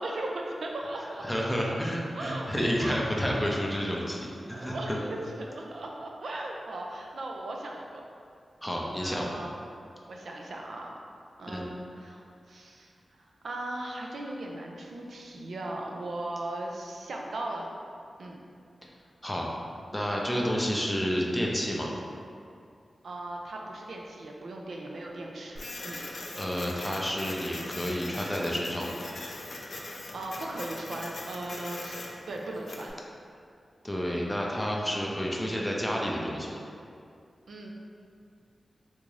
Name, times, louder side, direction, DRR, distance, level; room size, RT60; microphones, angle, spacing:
voice 1, 0.0-1.4 2.1-3.6 4.5-8.0 9.0-9.6 10.1-10.9 11.4-12.9 13.2-17.7 18.2-18.4 23.0-26.0 30.1-32.9 37.5-37.7, right 1 dB, 80° right, 0 dB, 0.4 m, -38 dB
voice 2, 1.2-4.7 8.6-9.4 11.5-11.6 19.2-19.5 19.9-21.9 25.9-29.1 33.8-36.6, equal, 5° left, -2 dB, 0.4 m, -30 dB
Printer, 25.6-32.9, left 2 dB, 70° left, 0.4 m, -41 dB
3.6 x 2.5 x 3.2 m, 2.4 s
wide cardioid pair, 95°, 0 cm